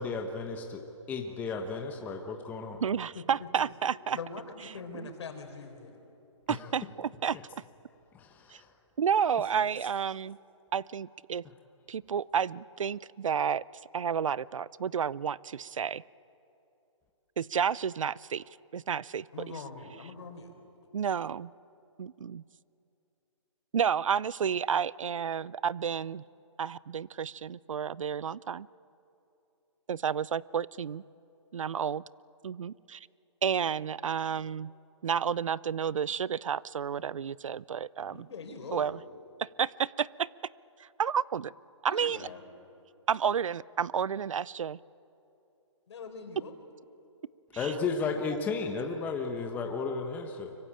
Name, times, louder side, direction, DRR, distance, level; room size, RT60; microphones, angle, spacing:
voice 1, 0.0-2.8 6.5-6.7 7.3-7.4 8.1-8.7 47.5-50.6, left 4 dB, 10° left, 3 dB, 1.1 m, -34 dB
voice 2, 2.8-4.2 4.9-5.1 6.5-7.4 9.0-10.4 10.7-11.4 11.9-13.6 13.9-16.0 17.4-18.4 18.7-19.3 20.9-21.5 22.0-22.4 23.7-26.2 26.6-28.7 29.9-31.0 31.5-32.0 32.4-33.0 33.4-34.7 35.0-38.3 38.7-38.9 39.4-40.3 41.0-41.5 41.8-42.3 43.1-44.8 47.6-47.7, right 7 dB, 80° right, 23 dB, 0.5 m, -31 dB
voice 3, 4.1-6.0 19.3-20.5 38.1-39.0 41.9-42.4 45.9-46.5, left 4 dB, 60° left, 5 dB, 4.3 m, -42 dB
25.0 x 23.0 x 8.8 m, 2.9 s
hypercardioid pair, 155°, 17 cm